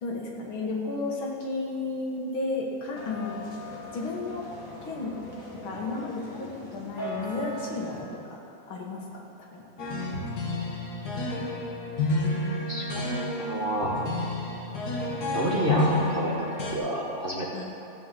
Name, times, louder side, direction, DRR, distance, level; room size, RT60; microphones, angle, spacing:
voice 1, 0.0-3.4 3.9-4.5 4.8-5.1 5.5-8.4 8.7-9.7 17.5-17.6, left 3 dB, 85° left, -2 dB, 2.5 m, -33 dB
sound 1, 3.0-8.0, equal, 25° left, 1.3 m, -39 dB
sound 2, 9.8-16.8, left 2 dB, 55° left, 2.0 m, -30 dB
voice 2, 13.4-13.9 15.3-16.4 16.7-17.6, right 1 dB, 35° right, -3 dB, 1.1 m, -29 dB
15.0 x 5.6 x 7.5 m, 2.9 s
omnidirectional pair, 2.2 m